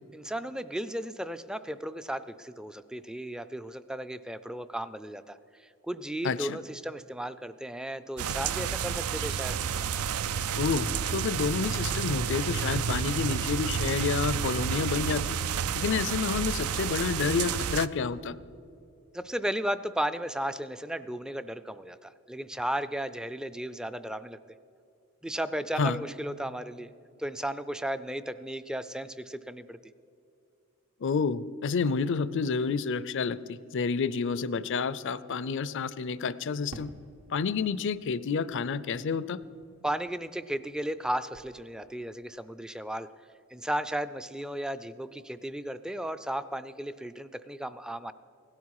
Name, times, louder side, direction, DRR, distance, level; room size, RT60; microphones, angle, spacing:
voice 1, 0.1-9.6 19.1-24.4 25.2-26.9 27.2-29.8 39.8-43.1 43.5-48.1, right 1 dB, 5° right, 13 dB, 0.4 m, -35 dB
voice 2, 6.2-6.6 10.6-15.4 15.7-18.4 25.8-26.0 31.0-36.9 37.3-39.4, left 5 dB, 60° left, 17 dB, 0.5 m, -29 dB
sound 1, 8.2-17.9, right 7 dB, 85° right, 0.4 m, -30 dB
Fireworks, 36.7-41.1 41.3-42.1, right 2 dB, 65° right, 0.9 m, -52 dB
17.0 x 12.5 x 4.7 m, 2.7 s
head